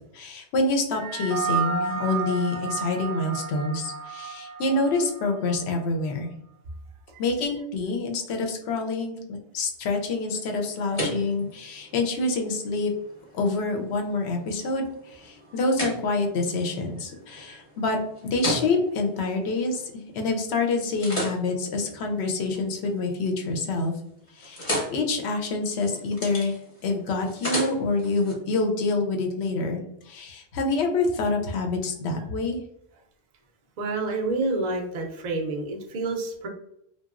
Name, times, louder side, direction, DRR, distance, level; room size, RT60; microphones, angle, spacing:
voice 1, 0.1-6.3 7.2-12.9 13.3-18.0 18.2-23.9 24.3-32.6, left 3 dB, 75° left, 3 dB, 0.8 m, -27 dB
sound 1, 0.9-5.6, right 5 dB, 85° right, 0.9 m, -32 dB
sound 2, 10.3-20.3 20.7-23.0 23.3-23.8 24.1-28.3, equal, 30° left, 0.9 m, -36 dB
voice 2, 33.8-36.5, right 3 dB, 50° right, 2 dB, 0.6 m, -28 dB
2.8 x 2.3 x 2.4 m, 0.75 s
omnidirectional pair, 1.1 m